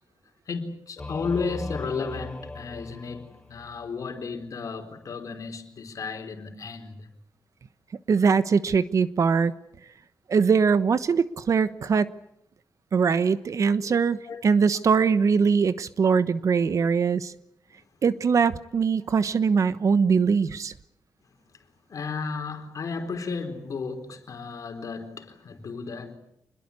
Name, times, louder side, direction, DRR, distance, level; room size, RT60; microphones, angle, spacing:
voice 1, 0.5-7.1 13.8-14.0 14.3-14.5 21.9-26.2, left 4 dB, 60° left, 6 dB, 4.1 m, -34 dB
Singing / Musical instrument, 1.0-3.9, left 2 dB, 15° left, 3.4 m, -38 dB
voice 2, 8.1-9.5 10.3-12.1 12.9-17.3 18.0-20.7, right 5 dB, 55° right, 14 dB, 1.1 m, -22 dB
27.0 x 21.5 x 8.5 m, 0.75 s
wide cardioid pair, 125°, 7 cm